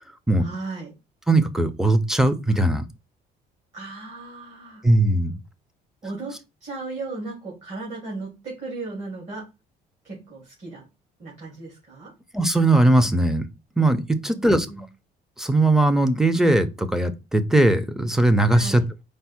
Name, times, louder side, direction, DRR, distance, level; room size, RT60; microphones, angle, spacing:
voice 1, 0.4-0.9 3.7-4.8 6.0-6.3 6.6-9.5 10.0-10.8 11.2-12.1 14.2-14.9 18.5-18.8, right 3 dB, 40° right, -4 dB, 2.0 m, -36 dB
voice 2, 1.3-2.8 4.8-5.3 12.3-13.4 13.8-14.7 15.4-18.8, right 2 dB, 5° right, 10 dB, 0.5 m, -19 dB
4.5 x 2.0 x 4.3 m, 0.26 s
cardioid pair, 110°, 17 cm